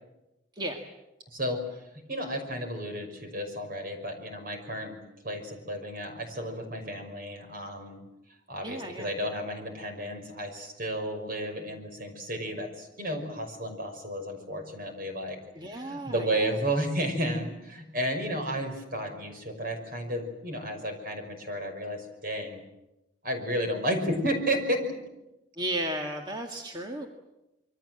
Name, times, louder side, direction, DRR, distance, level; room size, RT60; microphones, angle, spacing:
voice 1, 1.3-1.6 2.1-5.0 5.2-8.0 8.5-15.4 15.7-22.6 23.2-24.9, equal, 55° right, 6 dB, 5.7 m, -32 dB
voice 2, 8.6-9.1 15.5-16.5 25.6-27.1, right 1 dB, 25° right, 2 dB, 1.8 m, -34 dB
26.5 x 23.5 x 7.8 m, 0.95 s
head